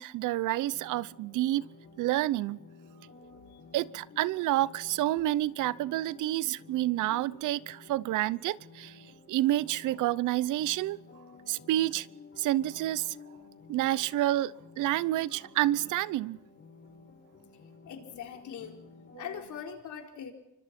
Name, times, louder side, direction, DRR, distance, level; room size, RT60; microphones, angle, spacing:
voice 1, 0.0-1.7 2.0-2.6 3.7-8.9 9.3-11.0 11.5-12.1 12.4-13.2 13.7-16.4, right 15 dB, 85° right, 0.7 m, -29 dB
sound 1, 0.7-19.5, left 4 dB, 45° left, 6.7 m, -53 dB
voice 2, 17.9-18.8 19.2-20.3, left 8 dB, 75° left, 4.3 m, -41 dB
27.0 x 24.5 x 4.4 m
cardioid pair, 90°, 30 cm